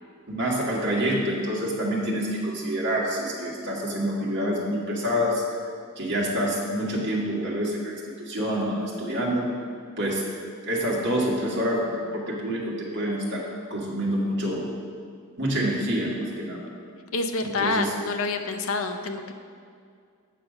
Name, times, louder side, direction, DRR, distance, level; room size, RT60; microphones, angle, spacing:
voice 1, 0.3-5.4 6.0-7.9 8.3-9.5 10.0-10.2 10.7-13.5 13.7-14.7 15.4-16.6 17.6-17.9, equal, 50° right, -4 dB, 1.8 m, -27 dB
voice 2, 17.1-19.3, left 3 dB, 65° left, 6 dB, 0.7 m, -27 dB
8.4 x 5.8 x 5.3 m, 2.2 s
head